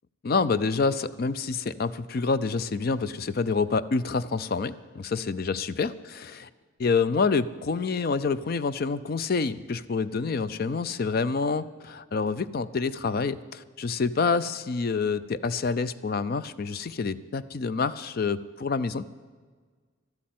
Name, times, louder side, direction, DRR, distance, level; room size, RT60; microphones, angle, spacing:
voice 1, 0.2-6.5 6.8-19.1, left 4 dB, 45° left, 16 dB, 0.4 m, -27 dB
12.5 x 8.6 x 9.3 m, 1.5 s
head